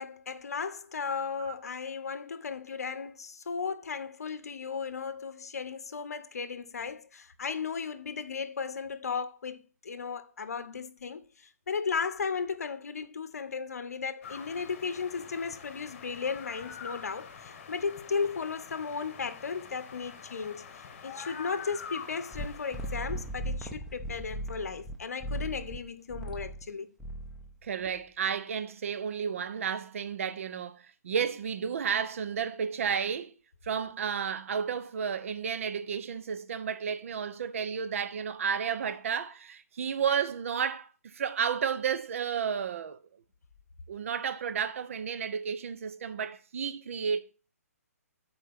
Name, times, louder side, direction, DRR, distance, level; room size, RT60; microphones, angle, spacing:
voice 1, 0.0-26.9, left 5 dB, 70° left, 0.7 m, -35 dB
sound 1, 14.2-23.4, left 6 dB, 45° left, 1.2 m, -46 dB
sound 2, 22.3-25.0 25.2-25.8 26.1-26.6 27.0-27.5, right 1 dB, ahead, 1.0 m, -37 dB
voice 2, 27.6-33.3 33.6-43.0 43.9-47.2, right 7 dB, 55° right, 0.7 m, -32 dB
6.5 x 4.5 x 5.9 m
figure-of-eight pair, 135°, 9 cm